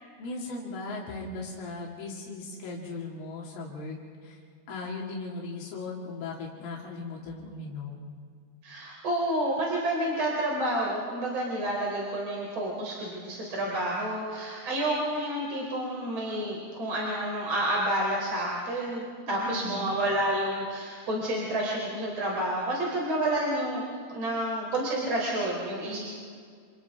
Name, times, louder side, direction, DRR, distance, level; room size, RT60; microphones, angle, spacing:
voice 1, 0.2-4.4 4.7-8.1 19.3-20.0 25.8-26.0, left 3 dB, 80° left, -3 dB, 5.0 m, -38 dB
voice 2, 8.6-23.8 24.1-26.0, right 1 dB, 35° right, -3 dB, 4.2 m, -29 dB
29.5 x 29.0 x 3.6 m, 2.1 s
omnidirectional pair, 5.7 m